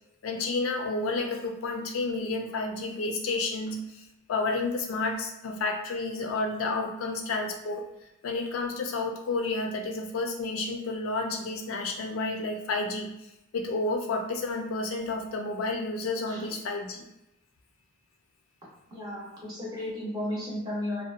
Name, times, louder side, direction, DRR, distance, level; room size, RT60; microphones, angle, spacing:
voice 1, 0.2-4.0 4.3-7.8 8.2-13.1 13.5-17.0, left 3 dB, 80° left, 2 dB, 0.4 m, -30 dB
voice 2, 18.9-21.0, left 1 dB, 20° right, -6 dB, 0.8 m, -34 dB
2.7 x 2.1 x 2.4 m, 0.89 s
head